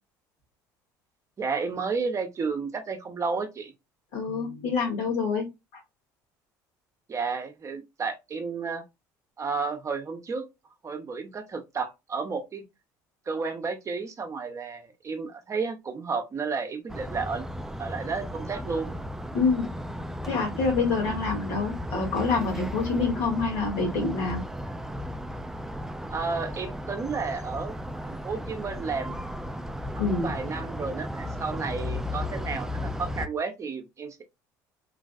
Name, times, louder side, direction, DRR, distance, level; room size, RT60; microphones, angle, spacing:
voice 1, 1.4-3.7 7.1-8.8 9.4-10.5 10.8-12.6 13.3-17.5 17.8-18.9 26.1-27.8 28.0-29.2 30.1-34.2, right 4 dB, 35° right, 0.7 m, -32 dB
voice 2, 4.1-5.5 5.7-5.8 19.3-19.7 20.2-24.4 30.0-30.3, left 4 dB, 75° left, 1.5 m, -26 dB
sound 1, 16.9-33.3, left 1 dB, 5° right, 0.3 m, -35 dB
3.2 x 2.4 x 2.3 m
hypercardioid pair, 75°, 9 cm